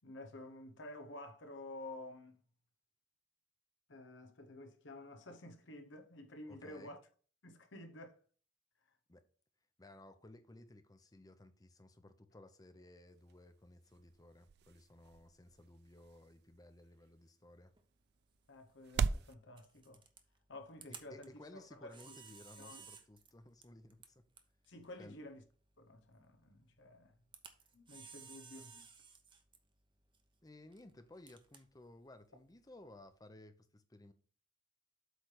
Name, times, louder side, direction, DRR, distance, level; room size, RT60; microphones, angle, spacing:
voice 1, 0.0-2.4 3.9-7.0 7.4-8.2 18.5-20.0 20.5-22.2 22.6-22.8 24.7-25.4 25.8-27.1 27.7-28.8, left 1 dB, 85° left, 1.0 m, -51 dB
voice 2, 6.5-7.0 9.1-9.2 9.8-17.7 20.9-24.2 25.0-25.2 30.4-34.1, left 1 dB, 20° left, 0.7 m, -58 dB
sound 1, 13.1-19.3, right 5 dB, 60° right, 0.3 m, -43 dB
Camera, 17.7-33.2, right 6 dB, 25° right, 0.8 m, -60 dB
8.1 x 3.4 x 5.9 m
head